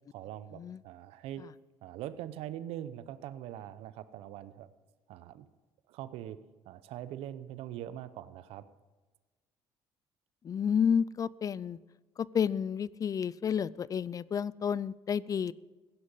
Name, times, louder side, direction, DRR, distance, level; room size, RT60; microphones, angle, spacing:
voice 1, 0.1-1.4 1.8-4.7 5.1-5.5 5.9-6.4 6.6-8.6, right 12 dB, 85° right, 14 dB, 0.8 m, -42 dB
voice 2, 10.4-11.8 12.2-15.5, left 7 dB, 35° left, 21 dB, 0.4 m, -30 dB
16.0 x 10.5 x 5.6 m, 1.3 s
cardioid pair, 105°, 10 cm